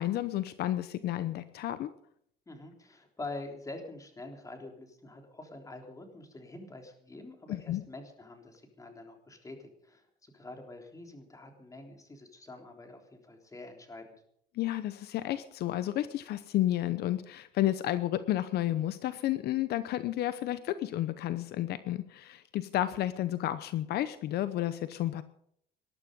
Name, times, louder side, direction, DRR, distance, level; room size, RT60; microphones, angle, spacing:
voice 1, 0.0-1.9 7.5-7.8 14.5-25.2, left 13 dB, 70° left, 13 dB, 0.9 m, -31 dB
voice 2, 2.5-14.1, left 2 dB, 20° left, 3 dB, 3.6 m, -46 dB
19.5 x 12.0 x 5.3 m, 0.68 s
cardioid pair, 110°, 17 cm